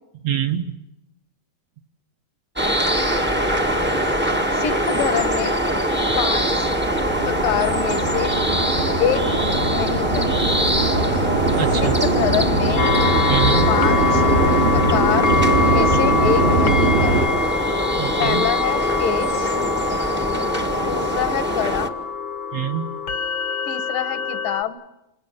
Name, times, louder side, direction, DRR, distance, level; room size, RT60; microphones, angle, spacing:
voice 1, 0.2-0.8 6.1-6.2 11.6-11.9 13.3-13.7 15.9-16.0 18.0-18.5 22.5-23.0, right 10 dB, 65° right, 5 dB, 1.8 m, -25 dB
sound 1, 2.6-21.9, right 1 dB, 10° right, 0.6 m, -23 dB
voice 2, 4.5-5.5 6.1-6.7 7.3-8.4 9.0-9.3 9.7-10.3 11.8-12.9 13.7-14.2 14.7-15.3 15.7-17.2 18.2-19.6 20.8-22.0 23.7-24.8, left 9 dB, 75° left, 10 dB, 3.1 m, -25 dB
sound 2, 6.0-17.3, right 2 dB, 90° right, 6.4 m, -22 dB
sound 3, 12.8-24.6, left 5 dB, 55° left, 1.4 m, -24 dB
29.5 x 27.5 x 6.7 m, 0.96 s
omnidirectional pair, 3.9 m